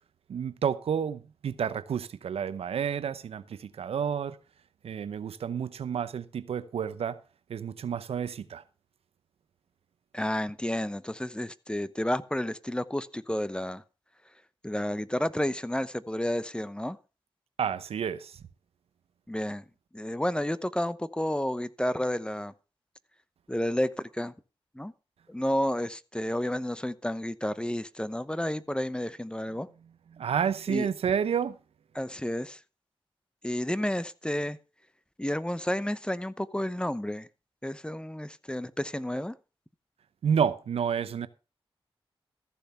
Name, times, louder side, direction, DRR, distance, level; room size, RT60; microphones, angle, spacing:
voice 1, 0.3-4.4 4.8-7.2 7.5-8.6 17.6-18.4 30.1-31.6 40.2-41.3, right 7 dB, 90° right, 0.7 m, -30 dB
voice 2, 10.1-13.8 14.6-17.0 19.3-19.6 19.9-22.5 23.5-24.3 24.7-24.9 25.3-29.7 30.7-30.9 31.9-32.6 33.4-34.6 35.2-37.3 37.6-39.3, left 1 dB, 10° left, 0.8 m, -31 dB
14.0 x 7.0 x 5.6 m
cardioid pair, 55°, 10 cm